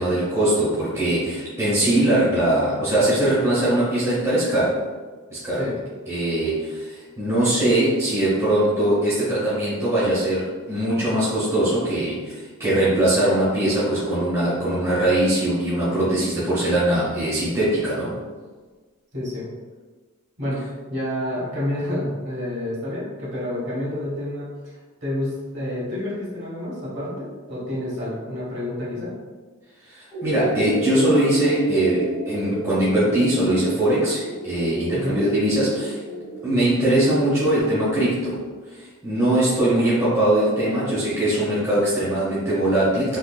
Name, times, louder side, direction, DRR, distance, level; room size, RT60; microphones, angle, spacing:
voice 1, 0.0-4.8 5.3-5.7 6.1-18.1 29.9-36.0 36.4-38.4 38.7-43.2, right 1 dB, 15° right, -11 dB, 1.2 m, -21 dB
voice 2, 19.1-19.5 20.4-20.6 20.9-24.5 25.0-29.1 34.9-35.2 39.2-39.5, left 1 dB, 50° right, -8 dB, 1.5 m, -29 dB
sound 1, 30.1-37.6, right 1 dB, 20° left, 1.2 m, -31 dB
3.7 x 2.8 x 2.3 m, 1.4 s
head